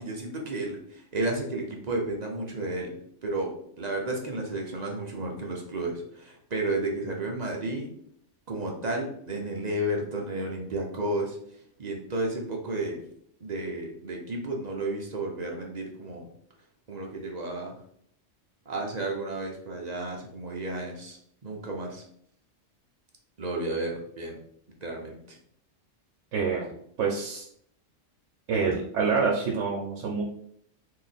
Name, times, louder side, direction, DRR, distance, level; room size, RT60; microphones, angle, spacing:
voice 1, 0.0-2.9 3.2-7.9 8.5-11.4 11.8-13.0 13.4-16.3 16.9-17.7 18.7-22.0 23.4-24.4 24.8-25.4, right 2 dB, 45° right, 0 dB, 0.6 m, -32 dB
voice 2, 26.3-26.7 27.0-27.4 28.5-30.2, right 5 dB, 75° right, -2 dB, 1.0 m, -26 dB
3.0 x 2.8 x 4.0 m, 0.68 s
omnidirectional pair, 1.3 m